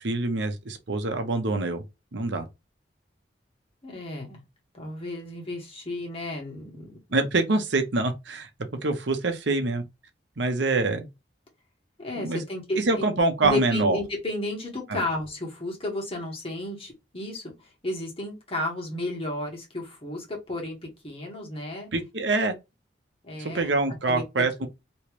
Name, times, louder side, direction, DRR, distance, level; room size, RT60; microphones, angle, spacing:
voice 1, 0.0-1.8 2.1-2.5 7.1-8.5 8.8-9.8 10.4-11.1 12.2-12.4 12.8-14.0 14.9-15.0 21.9-22.5 23.4-24.7, right 3 dB, 75° right, 0.9 m, -25 dB
voice 2, 3.8-4.4 4.7-7.0 12.0-13.0 13.4-20.8 21.0-21.9 23.2-23.7 24.1-24.7, left 1 dB, 30° left, 1.7 m, -33 dB
3.1 x 3.0 x 3.1 m
head